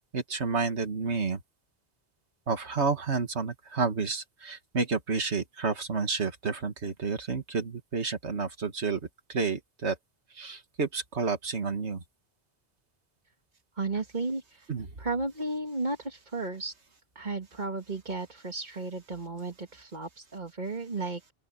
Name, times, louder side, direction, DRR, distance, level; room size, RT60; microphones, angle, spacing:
voice 1, 0.1-1.4 2.5-9.0 9.3-10.0 10.4-12.0 14.7-14.9, right 4 dB, 85° right, 2.2 m, -30 dB
voice 2, 13.8-14.7 15.0-16.8 17.2-21.2, right 3 dB, 45° right, 2.3 m, -34 dB
open air
omnidirectional pair, 1.1 m